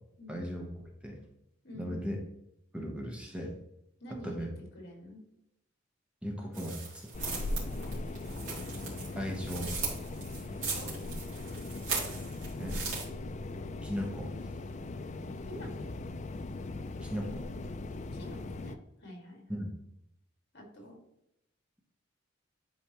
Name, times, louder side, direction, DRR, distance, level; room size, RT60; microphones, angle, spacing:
voice 1, 0.3-0.7 1.0-1.2 1.8-2.2 2.7-3.6 4.1-4.5 6.2-7.1 9.2-9.8 12.6-12.8 13.8-14.5 17.0-17.5 19.5-19.7, equal, 5° right, 0 dB, 0.9 m, -37 dB
voice 2, 4.0-5.2 7.8-7.9 10.7-10.9 15.5-16.0 18.1-19.6 20.5-21.0, equal, 55° left, 1 dB, 2.1 m, -47 dB
sound 1, 6.5-13.0, right 4 dB, 65° right, 2.8 m, -39 dB
sound 2, 7.1-18.7, left 2 dB, 35° left, 0.4 m, -39 dB
11.0 x 4.4 x 3.0 m, 0.83 s
head